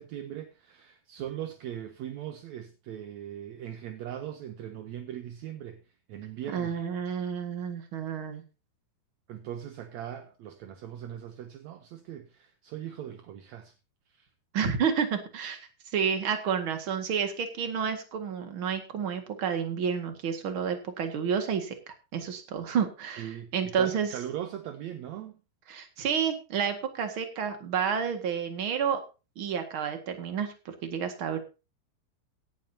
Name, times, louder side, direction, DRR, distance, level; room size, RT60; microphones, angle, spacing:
voice 1, 0.0-5.8 6.1-6.8 9.3-13.7 14.2-14.3 23.2-25.4, right 10 dB, 70° right, 1.8 m, -40 dB
voice 2, 6.5-8.4 14.5-24.1 25.7-29.0 29.4-31.4, right 7 dB, 40° right, 2.3 m, -30 dB
17.5 x 10.5 x 2.8 m
omnidirectional pair, 4.1 m